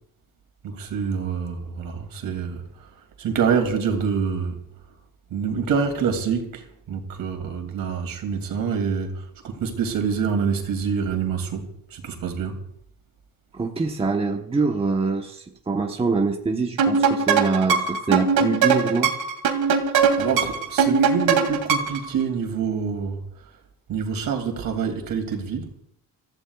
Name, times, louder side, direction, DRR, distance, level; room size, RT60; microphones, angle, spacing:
voice 1, 0.6-2.6 3.2-4.6 5.3-11.6 11.9-12.5 20.2-23.2 23.9-25.8, right 6 dB, 65° right, 2.8 m, -26 dB
voice 2, 13.5-19.1, right 4 dB, 15° right, 1.1 m, -24 dB
sound 1, 16.8-22.1, right 5 dB, 80° right, 2.5 m, -21 dB
28.5 x 15.0 x 2.4 m
cardioid pair, 155°, 36 cm